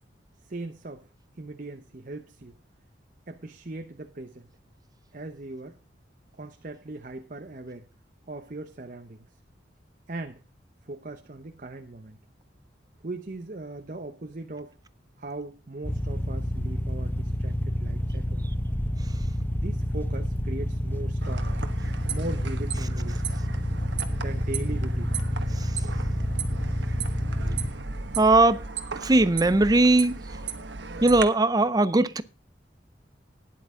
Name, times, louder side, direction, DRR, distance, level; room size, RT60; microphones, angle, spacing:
voice 1, 0.4-1.0 1.4-2.5 3.3-4.5 5.1-5.8 6.4-7.9 8.3-9.3 10.1-10.4 10.9-12.2 13.0-14.8 15.2-18.5 19.5-21.6 22.1-23.2 24.2-25.2, right 2 dB, 45° right, 0.9 m, -39 dB
sound 1, 15.8-27.7, equal, 10° left, 0.8 m, -29 dB
sound 2, 21.2-31.2, right 5 dB, 75° right, 1.3 m, -36 dB
voice 2, 28.2-28.6 29.0-30.1 31.0-32.2, right 2 dB, 20° right, 0.5 m, -19 dB
12.5 x 10.5 x 3.7 m
head